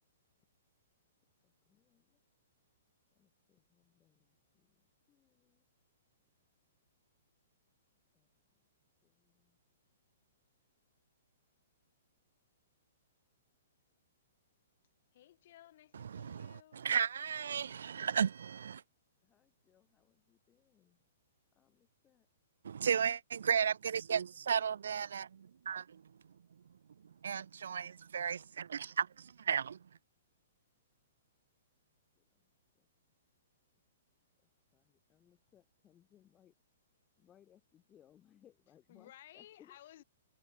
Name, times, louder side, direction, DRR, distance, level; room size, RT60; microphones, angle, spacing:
voice 1, 1.4-2.2 3.2-5.6 8.1-8.3 9.0-9.6 19.2-21.0 21.5-22.3 24.3-24.4 32.2-32.5 32.7-32.9 34.7-36.5 37.2-40.0, left 10 dB, 15° left, 2.2 m, -68 dB
voice 2, 15.1-16.9 38.9-40.0, left 13 dB, 45° left, 5.9 m, -58 dB
voice 3, 15.9-18.8 22.6-26.0 27.2-29.8, right 7 dB, 80° right, 0.4 m, -34 dB
hypercardioid pair, 165°, 0 cm